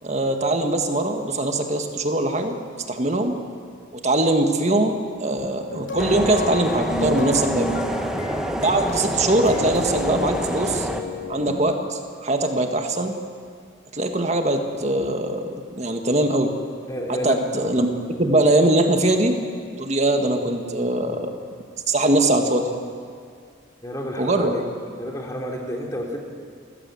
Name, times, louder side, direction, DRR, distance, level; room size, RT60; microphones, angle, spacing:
voice 1, 0.0-2.5 2.9-3.3 4.0-7.8 8.6-10.9 11.3-13.1 13.9-16.5 17.1-17.9 18.2-19.3 19.8-21.3 21.9-22.7 24.2-24.5, right 1 dB, 35° right, 5 dB, 1.8 m, -21 dB
sound 1, 5.7-11.5, equal, 80° left, 3.4 m, -32 dB
sound 2, 6.0-11.0, equal, 5° right, 1.1 m, -27 dB
voice 2, 16.9-17.4 23.8-24.6 25.0-26.2, equal, 15° left, 0 dB, 3.0 m, -30 dB
28.5 x 15.5 x 7.8 m, 2.2 s
head